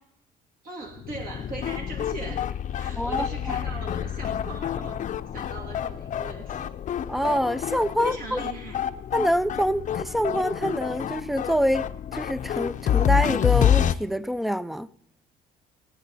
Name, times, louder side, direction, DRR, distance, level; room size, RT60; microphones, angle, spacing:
voice 1, 0.6-2.5 2.7-6.7 8.0-8.8, right 3 dB, 55° right, 2.7 m, -39 dB
sound 1, 0.9-13.9, left 10 dB, 45° left, 0.6 m, -28 dB
voice 2, 7.1-8.4 9.1-14.9, equal, ahead, 0.4 m, -26 dB
21.0 x 9.3 x 4.2 m
cardioid pair, 110°, 17 cm